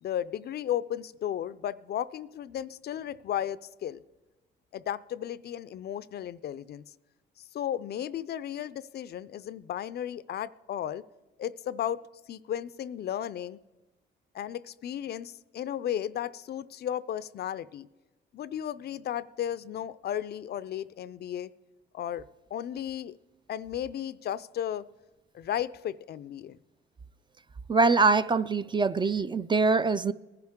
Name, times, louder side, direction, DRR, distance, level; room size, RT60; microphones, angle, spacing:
voice 1, 0.0-4.0 4.7-6.8 7.5-11.0 11.4-12.0 12.3-13.6 14.3-17.9 18.3-21.5 21.9-23.2 23.5-24.8 25.3-26.6, left 10 dB, 55° left, 0.4 m, -34 dB
voice 2, 27.7-30.1, right 4 dB, 25° right, 0.3 m, -23 dB
19.0 x 10.5 x 3.6 m
cardioid pair, 90°, 20 cm